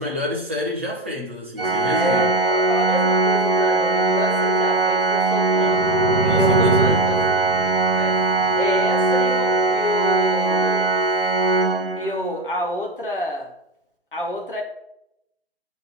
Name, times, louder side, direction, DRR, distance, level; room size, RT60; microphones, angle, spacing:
voice 1, 0.0-2.3 6.2-7.1, left 1 dB, 10° right, 0.5 m, -29 dB
Organ, 1.6-12.4, right 3 dB, 60° right, 0.7 m, -20 dB
voice 2, 1.9-5.9 6.4-8.2 8.6-10.9 12.0-13.5 14.1-14.6, left 1 dB, 55° left, 1.8 m, -29 dB
sound 1, 5.6-9.3, right 2 dB, 90° right, 1.1 m, -25 dB
9.0 x 4.1 x 4.2 m
figure-of-eight pair, 145°, 31 cm